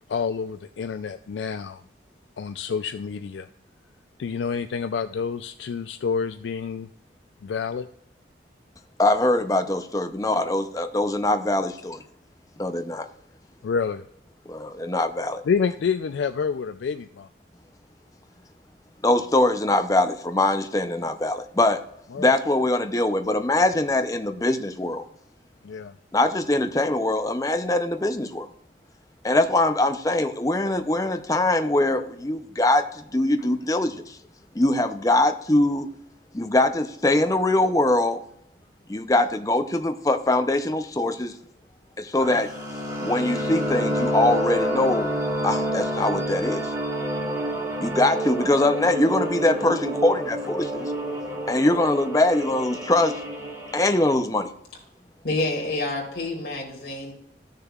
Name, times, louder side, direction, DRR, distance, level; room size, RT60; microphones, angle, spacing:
voice 1, 0.1-1.8 2.4-3.5 4.2-6.9 7.4-7.9 13.6-14.0 15.5-17.3 22.1-22.3 25.6-25.9, left 6 dB, 90° left, 9 dB, 0.3 m, -28 dB
voice 2, 9.0-12.0 12.6-13.1 14.5-15.4 19.0-21.8 22.2-25.1 26.1-28.5 29.2-34.2 34.5-35.9 36.3-38.2 38.9-41.4 42.0-42.5 43.0-45.1 45.4-46.6 47.8-50.9 51.5-53.2 53.7-54.5, left 2 dB, 20° left, 7 dB, 0.6 m, -22 dB
sound 1, 42.2-54.2, equal, 15° right, 1.2 m, -28 dB
voice 3, 55.2-57.1, left 2 dB, 60° left, -1 dB, 2.3 m, -28 dB
13.5 x 6.6 x 2.4 m, 0.74 s
head